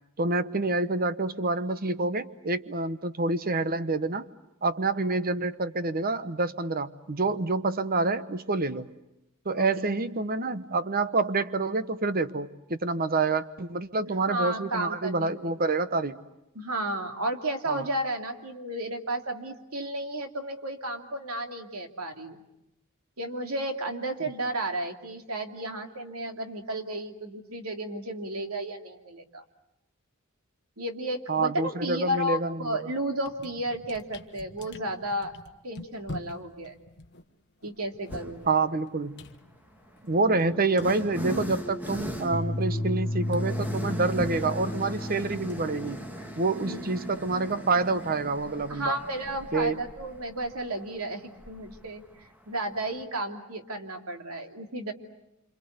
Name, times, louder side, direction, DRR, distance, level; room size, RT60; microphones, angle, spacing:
voice 1, 0.2-4.3 4.6-8.9 9.4-16.2 17.7-17.8 31.3-32.8 38.5-39.2 40.0-46.0 46.4-49.0 49.5-49.8, right 3 dB, 45° right, 12 dB, 1.1 m, -27 dB
voice 2, 14.3-15.5 16.5-22.4 23.2-29.4 30.8-35.3 35.6-36.7 37.6-38.6 46.6-46.8 48.7-54.9, right 1 dB, 85° right, 4 dB, 2.8 m, -33 dB
sound 1, 32.6-32.8 33.1-42.0 42.3-48.2, left 2 dB, 55° left, 1.3 m, -47 dB
sound 2, 38.1-38.6 39.5-53.0, equal, 10° right, 1.9 m, -40 dB
sound 3, 40.2-48.3, left 1 dB, 25° left, 1.2 m, -35 dB
27.0 x 27.0 x 8.1 m, 0.89 s
head